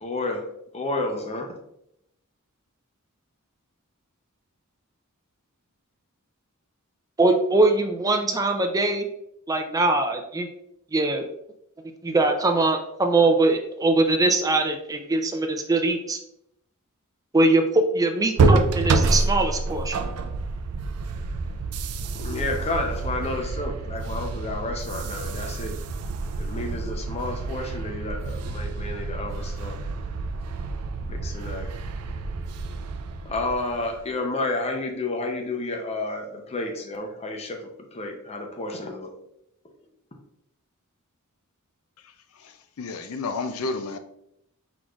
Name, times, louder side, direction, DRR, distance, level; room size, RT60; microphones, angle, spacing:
voice 1, 0.0-0.5 0.7-1.5 22.1-25.8 26.4-29.8 31.1-31.7 33.2-37.6 37.9-39.1, left 2 dB, 30° left, 2 dB, 0.7 m, -31 dB
voice 2, 7.2-9.0 9.5-10.5 10.9-11.3 12.0-16.2 17.3-20.0, right 2 dB, 15° right, 5 dB, 0.4 m, -22 dB
sound 1, 18.4-34.1, right 3 dB, 85° right, 0.4 m, -28 dB
voice 3, 42.4-44.0, left 3 dB, 70° left, 8 dB, 0.5 m, -31 dB
4.6 x 4.2 x 2.4 m, 0.76 s
head